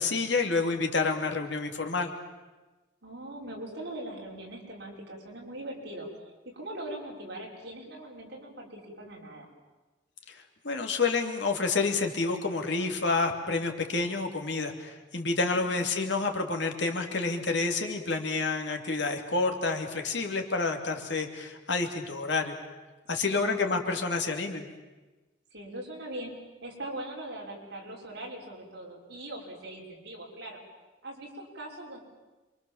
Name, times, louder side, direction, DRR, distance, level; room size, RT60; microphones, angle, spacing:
voice 1, 0.0-2.1 10.3-22.6 23.1-24.7, left 3 dB, 65° left, 4 dB, 3.0 m, -29 dB
voice 2, 3.0-6.1 6.4-9.5 15.4-15.8 23.3-23.6 25.5-26.3 26.6-30.6 31.0-32.0, right 1 dB, 55° right, -1 dB, 6.3 m, -41 dB
27.5 x 25.0 x 7.4 m, 1.2 s
head